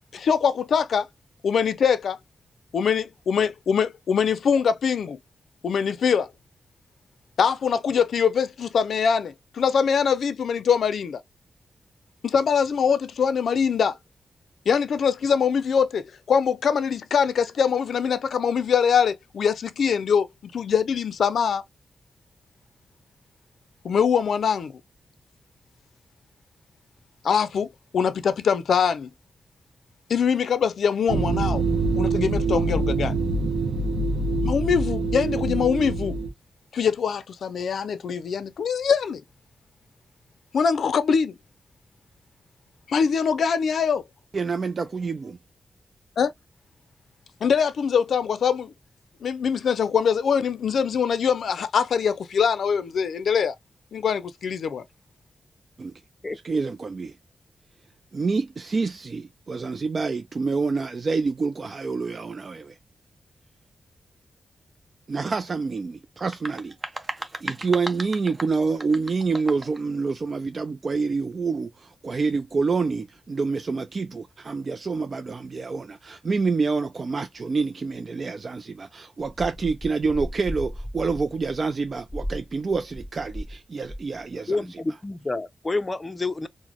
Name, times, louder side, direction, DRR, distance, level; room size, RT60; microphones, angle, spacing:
voice 1, 0.1-1.1 1.4-2.2 2.7-5.2 5.6-6.3 7.4-11.2 12.2-14.0 14.7-20.3 20.5-21.6 23.8-24.7 27.2-29.1 30.1-31.6 32.0-33.2 34.4-36.2 36.7-39.2 40.5-41.4 42.9-44.0 46.2-46.3 47.4-48.7 49.2-53.5 53.9-54.8, left 6 dB, 80° left, 0.4 m, -23 dB
sound 1, 31.1-36.3, right 3 dB, 80° right, 0.8 m, -25 dB
voice 2, 44.3-45.4 55.8-55.9 56.4-57.2 58.1-62.8 65.1-66.8 67.4-84.6, right 4 dB, 50° right, 0.3 m, -27 dB
voice 3, 56.2-56.6 84.5-86.5, left 3 dB, 30° left, 0.5 m, -29 dB
sound 2, 66.2-69.8, right 2 dB, 25° right, 0.7 m, -36 dB
sound 3, 79.3-83.6 83.8-84.2, equal, 5° left, 0.9 m, -36 dB
3.9 x 2.0 x 2.9 m
cardioid pair, 75°, 0 cm